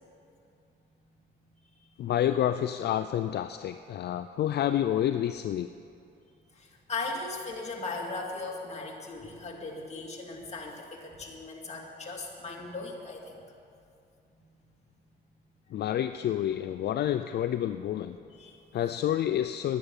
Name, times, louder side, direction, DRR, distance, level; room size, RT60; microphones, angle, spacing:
voice 1, 2.0-5.7 15.7-18.2 18.7-19.8, left 11 dB, 55° left, 10 dB, 0.4 m, -29 dB
voice 2, 6.5-13.4 14.3-14.4 18.3-18.6, left 3 dB, 35° left, -1 dB, 2.5 m, -38 dB
11.0 x 10.5 x 7.3 m, 2.5 s
cardioid pair, 90°, 20 cm